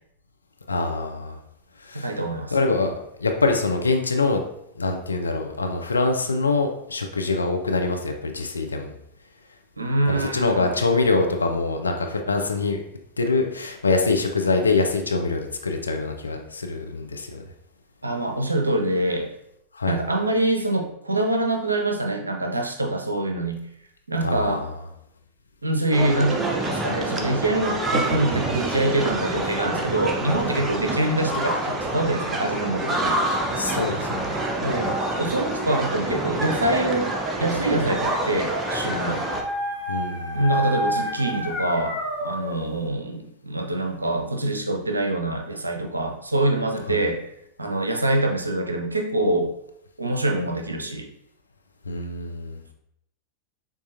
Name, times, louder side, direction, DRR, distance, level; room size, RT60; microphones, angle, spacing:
voice 1, 0.7-1.4 1.8-2.2 2.5-4.4 4.8-8.9 10.1-12.8 13.2-17.4 19.7-20.0 24.2-24.8 33.5-34.2 39.9-40.4 46.9-47.0 51.8-52.6, left 3 dB, 75° left, 3 dB, 0.4 m, -24 dB
voice 2, 1.9-2.5 9.8-10.8 18.0-19.3 19.9-23.6 24.1-24.7 25.6-33.2 34.6-39.2 40.3-47.2 47.6-49.5 50.0-51.1, right 1 dB, 80° right, 4 dB, 0.5 m, -25 dB
sound 1, 25.9-39.4, right 2 dB, 20° right, 0.6 m, -27 dB
Dog, 37.6-42.7, left 1 dB, ahead, 1.2 m, -30 dB
6.9 x 2.4 x 2.6 m, 0.77 s
figure-of-eight pair, 90°, 0 cm